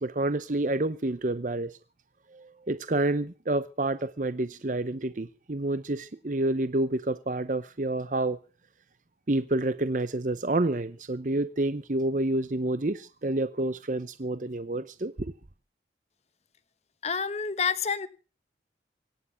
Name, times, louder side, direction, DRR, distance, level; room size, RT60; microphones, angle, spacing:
voice 1, 0.0-1.7 2.3-8.4 9.3-15.3, right 2 dB, 45° right, 0.8 m, -29 dB
voice 2, 17.0-18.1, left 6 dB, 35° left, 1.0 m, -28 dB
25.0 x 10.0 x 5.7 m
head